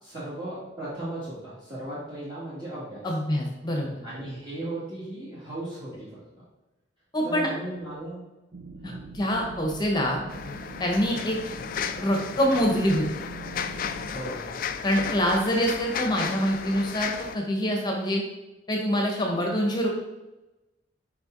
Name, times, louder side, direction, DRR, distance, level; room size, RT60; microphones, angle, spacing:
voice 1, 0.0-3.0 4.0-6.2 7.2-8.2 8.8-9.0 14.1-14.6, right 1 dB, 25° right, -11 dB, 1.9 m, -36 dB
voice 2, 3.0-4.0 7.1-7.5 8.8-10.2 10.8-11.4 12.0-13.0 14.8-18.2 18.7-19.9, equal, 20° left, 1 dB, 1.0 m, -25 dB
sound 1, 8.5-14.2, right 2 dB, 90° right, 0.7 m, -43 dB
sound 2, 10.3-17.4, left 7 dB, 50° left, 0.4 m, -34 dB
5.7 x 5.0 x 3.9 m, 1.0 s
head